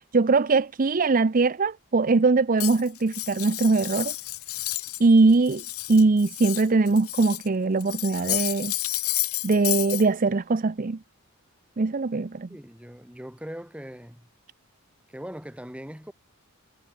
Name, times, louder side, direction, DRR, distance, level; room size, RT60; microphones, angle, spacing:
voice 1, 0.1-4.1 5.0-5.6 5.9-8.7 9.4-11.0 11.8-12.5, right 3 dB, 40° right, 0.6 m, -21 dB
Cutlery silverware, 2.6-5.1 5.3-7.5 7.8-10.0, left 18 dB, 75° left, 1.7 m, -31 dB
voice 2, 12.5-14.3 15.1-16.1, equal, 5° right, 4.1 m, -40 dB
head